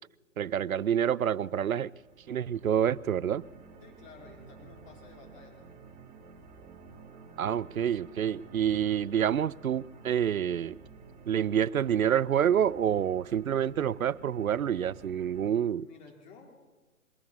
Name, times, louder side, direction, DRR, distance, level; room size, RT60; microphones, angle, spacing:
voice 1, 0.4-1.9 2.3-3.4 7.4-10.8 11.3-15.8, right 9 dB, 75° right, 0.7 m, -27 dB
sound 1, 1.8-15.5, right 4 dB, 15° right, 2.8 m, -52 dB
voice 2, 3.8-5.8 15.4-16.5, left 4 dB, 20° left, 4.2 m, -53 dB
23.5 x 16.0 x 7.3 m
hypercardioid pair, 150°, 42 cm